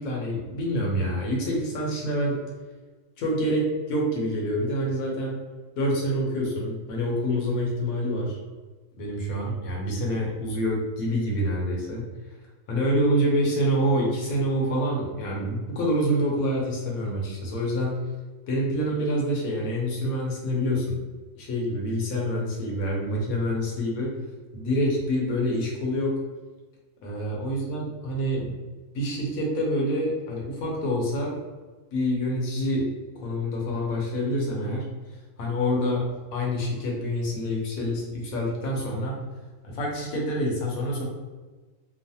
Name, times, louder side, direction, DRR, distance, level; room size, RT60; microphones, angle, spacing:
voice 1, 0.0-2.4 3.2-5.4 5.8-8.4 9.0-12.0 12.7-18.0 18.5-21.0 21.3-24.1 24.5-26.1 27.0-28.5 28.9-31.3 31.9-32.9 33.1-34.8 35.4-36.0 36.3-39.2 39.6-41.0, equal, 65° left, -2 dB, 1.1 m, -26 dB
3.1 x 2.0 x 2.7 m, 1.3 s
omnidirectional pair, 1.7 m